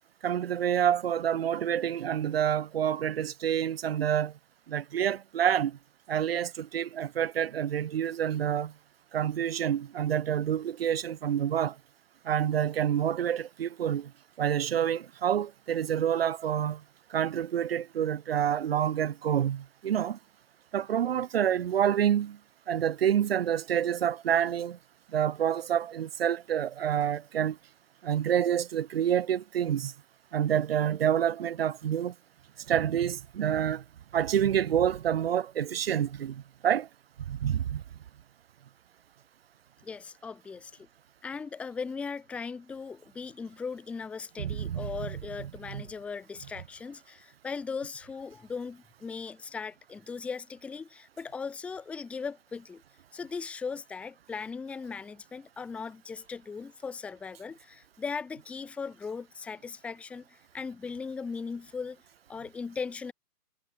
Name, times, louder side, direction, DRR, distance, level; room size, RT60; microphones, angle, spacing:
voice 1, 0.2-4.3 4.7-5.8 6.1-8.7 9.1-11.8 12.2-14.1 14.4-16.8 17.1-20.2 20.7-22.4 22.7-24.8 25.1-27.6 28.0-29.9 30.3-32.1 32.7-33.8 34.1-36.9 37.3-37.8 44.4-45.1 45.7-45.8, right 9 dB, 40° right, 3.6 m, -28 dB
voice 2, 39.8-40.9 41.2-52.8 53.1-62.0 62.3-63.1, left 5 dB, 5° left, 1.4 m, -38 dB
hypercardioid pair, 170°, 47 cm